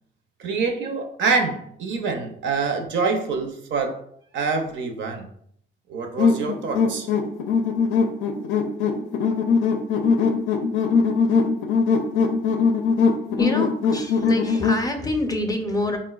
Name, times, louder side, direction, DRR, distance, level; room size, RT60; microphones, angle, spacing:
voice 1, 0.4-4.0 4.3-5.3 5.9-7.1, right 4 dB, 70° right, 0.5 m, -25 dB
sound 1, 6.2-14.9, left 5 dB, 85° left, 0.5 m, -21 dB
voice 2, 13.3-16.0, left 2 dB, 20° left, 0.5 m, -26 dB
3.8 x 2.1 x 2.3 m
cardioid pair, 90°, 20 cm